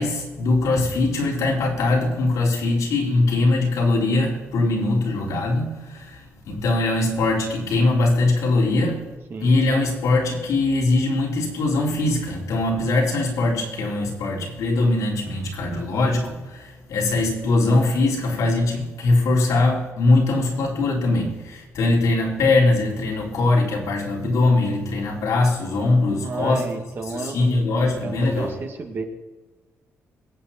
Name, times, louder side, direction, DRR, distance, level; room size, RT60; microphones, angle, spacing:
voice 1, 0.0-9.1 9.4-26.7 27.0-28.6, left 2 dB, 80° left, -1 dB, 4.0 m, -21 dB
voice 2, 26.2-27.6 28.0-29.0, right 4 dB, 40° right, 4 dB, 2.1 m, -32 dB
22.0 x 8.4 x 4.4 m, 1.2 s
cardioid pair, 130°, 6 cm